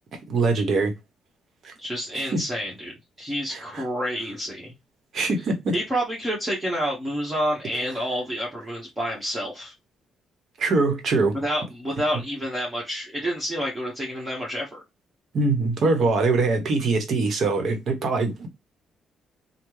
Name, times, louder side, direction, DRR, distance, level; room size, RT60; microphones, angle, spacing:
voice 1, 0.3-0.9 1.6-1.7 2.3-2.4 3.5-3.8 5.1-5.7 10.6-11.4 15.3-18.5, right 3 dB, 60° right, 1.0 m, -23 dB
voice 2, 1.8-4.7 5.7-9.7 11.3-14.8, equal, 20° right, 1.4 m, -29 dB
3.4 x 2.2 x 3.1 m
cardioid pair, 90°, 0 cm